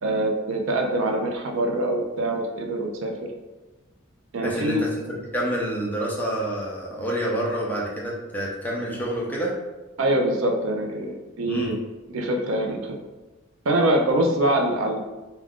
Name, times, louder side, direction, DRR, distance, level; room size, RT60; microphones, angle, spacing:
voice 1, 0.0-3.1 4.3-4.8 10.0-11.7 12.1-13.0 13.7-15.0, right 1 dB, 65° right, 2 dB, 0.4 m, -24 dB
voice 2, 4.4-4.9 5.3-9.5 11.5-11.7, right 1 dB, 10° left, -3 dB, 0.5 m, -28 dB
2.4 x 2.2 x 3.5 m, 1.1 s
head